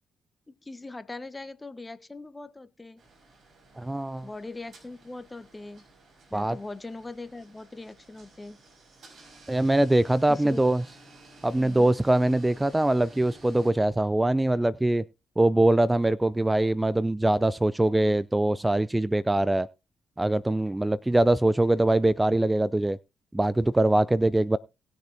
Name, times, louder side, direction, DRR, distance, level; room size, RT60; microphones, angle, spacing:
voice 1, 0.6-3.0 4.2-5.8 6.3-8.6 10.3-10.6 11.5-11.9, left 2 dB, 25° left, 1.1 m, -40 dB
sound 1, 3.0-13.7, right 2 dB, 55° right, 5.1 m, -54 dB
voice 2, 3.8-4.3 6.3-6.6 9.5-10.8 11.4-15.0 15.4-19.7 20.2-23.0 23.3-24.6, right 1 dB, 15° right, 0.4 m, -23 dB
19.5 x 6.8 x 2.8 m
hypercardioid pair, 40°, 0 cm